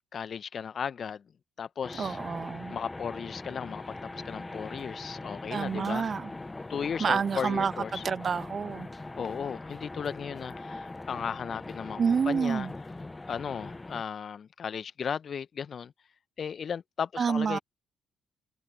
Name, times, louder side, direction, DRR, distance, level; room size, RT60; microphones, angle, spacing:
voice 1, 0.1-1.2 1.6-2.2 2.7-6.1 6.7-8.0 9.2-12.0 12.3-12.7 13.3-15.9 16.4-17.6, left 7 dB, 45° left, 1.4 m, -35 dB
sound 1, 1.8-14.0, left 2 dB, 20° left, 1.0 m, -41 dB
voice 2, 2.0-2.8 5.5-6.3 7.0-8.9 12.0-12.7 17.2-17.6, right 6 dB, 40° right, 0.5 m, -28 dB
figure-of-eight pair, 45°, 0 cm